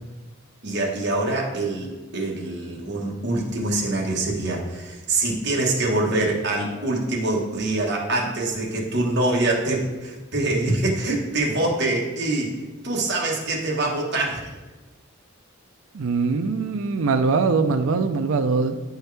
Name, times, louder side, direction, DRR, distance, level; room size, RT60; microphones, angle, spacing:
voice 1, 0.6-12.5 12.8-14.5, right 2 dB, 55° right, -2 dB, 1.4 m, -24 dB
voice 2, 15.9-18.8, right 4 dB, 80° right, 7 dB, 0.4 m, -22 dB
9.2 x 4.6 x 3.3 m, 1.2 s
head